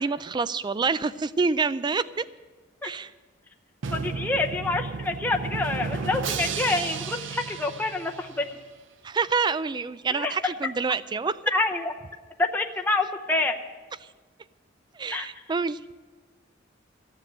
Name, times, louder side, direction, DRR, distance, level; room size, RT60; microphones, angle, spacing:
voice 1, 0.0-2.2 2.8-3.1 9.0-11.4 14.9-15.8, right 4 dB, 25° right, 16 dB, 0.3 m, -27 dB
Drum, 3.8-8.7, right 5 dB, 75° right, 0.6 m, -33 dB
voice 2, 3.9-8.5 10.1-10.3 11.5-11.9 12.4-13.5 15.1-15.3, left 2 dB, 10° left, 2 dB, 0.7 m, -27 dB
14.0 x 7.5 x 8.9 m, 1.4 s
head